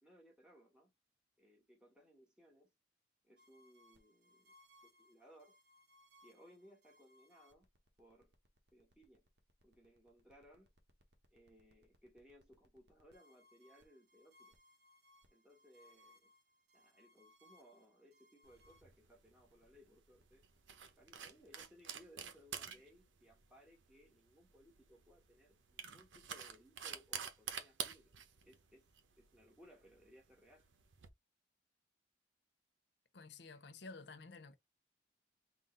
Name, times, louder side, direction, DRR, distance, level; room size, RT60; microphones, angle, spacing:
voice 1, 0.0-0.9 1.4-2.7 3.2-4.5 4.8-5.6 6.2-7.7 8.0-8.3 8.7-9.3 9.6-10.7 11.3-14.5 15.3-16.3 16.7-20.4 21.0-28.1 28.4-28.9 29.2-30.7, equal, 5° right, 1.5 m, -64 dB
sound 1, 3.4-21.6, left 1 dB, 60° right, 1.1 m, -69 dB
sound 2, 18.5-31.1, right 8 dB, 85° right, 0.8 m, -49 dB
voice 2, 33.1-34.6, left 3 dB, 65° left, 0.6 m, -52 dB
3.9 x 2.5 x 3.8 m
head